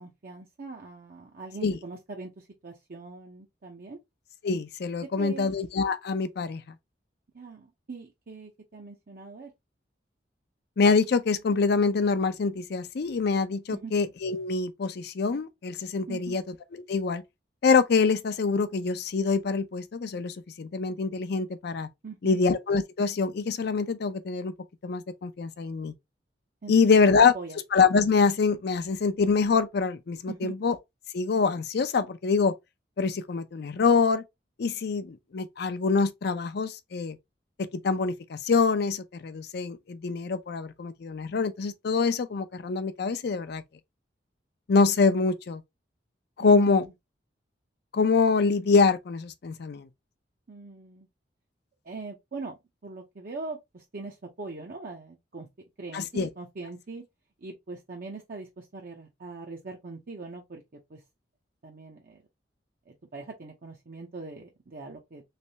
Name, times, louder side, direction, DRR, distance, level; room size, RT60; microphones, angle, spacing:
voice 1, 0.0-4.0 5.2-5.5 7.3-9.5 13.7-13.9 16.1-16.4 22.0-22.4 26.6-26.9 27.3-27.6 30.3-30.5 46.4-46.9 50.5-51.1 51.8-55.5 55.8-57.0 57.4-61.0 61.6-62.2 62.9-65.2, right 3 dB, 55° right, 0.6 m, -41 dB
voice 2, 4.4-6.6 10.8-16.4 16.7-17.2 17.6-21.9 22.2-24.5 24.8-25.9 26.7-27.3 27.7-30.8 31.1-32.5 33.0-34.2 34.6-37.2 37.6-43.6 44.7-45.6 46.4-46.9 47.9-49.9 55.9-56.3, left 4 dB, 65° left, 0.5 m, -25 dB
3.3 x 3.1 x 2.7 m
head